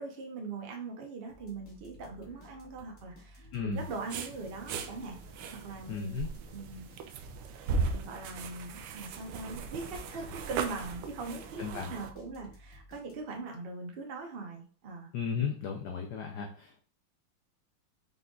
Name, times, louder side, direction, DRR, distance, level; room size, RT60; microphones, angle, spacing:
voice 1, 0.0-5.2 5.5-6.2 6.5-6.9 7.7-15.1, right 4 dB, 65° right, 1 dB, 0.5 m, -41 dB
sound 1, 1.3-13.5, left 1 dB, 40° left, 1.3 m, -55 dB
voice 2, 3.5-3.9 5.9-6.3 11.6-11.9 15.1-16.8, left 6 dB, 75° left, 2 dB, 0.9 m, -35 dB
sound 2, 3.8-12.1, right 4 dB, 85° right, 1.5 m, -38 dB
5.5 x 3.8 x 2.3 m, 0.41 s
omnidirectional pair, 2.4 m